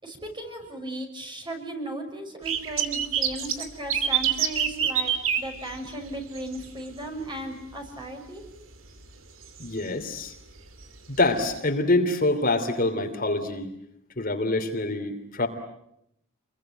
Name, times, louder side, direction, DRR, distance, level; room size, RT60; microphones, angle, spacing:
voice 1, 0.0-8.4, right 1 dB, 25° right, 4 dB, 6.4 m, -36 dB
sound 1, 2.5-6.6 6.9-7.2 7.7-7.8 9.0-9.2 9.6-9.7 10.8-10.9 11.6-11.7, right 9 dB, 70° right, 2.9 m, -26 dB
voice 2, 9.6-10.3 11.1-13.7 14.2-15.5, left 2 dB, 45° left, 5 dB, 3.0 m, -25 dB
28.5 x 22.5 x 9.1 m, 0.78 s
head